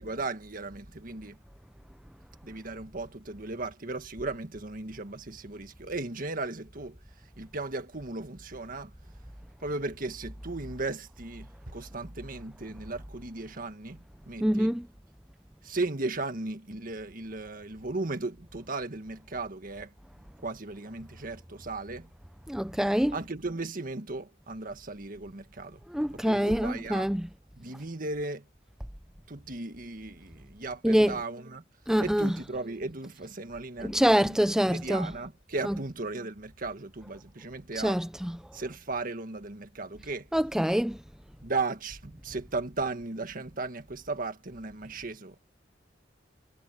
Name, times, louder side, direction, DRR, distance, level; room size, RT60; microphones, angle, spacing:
voice 1, 0.0-1.4 2.4-8.9 9.6-14.7 15.6-19.9 20.4-22.1 23.1-25.8 26.1-27.1 27.6-28.5 29.3-31.6 32.0-38.0 38.5-40.3 41.4-45.4, right 3 dB, 50° right, 1.7 m, -36 dB
voice 2, 14.4-14.9 22.5-23.2 25.9-27.3 30.8-31.2 31.9-32.4 33.8-35.1 35.6-35.8 37.7-38.4 40.3-41.0, equal, 5° right, 0.5 m, -25 dB
head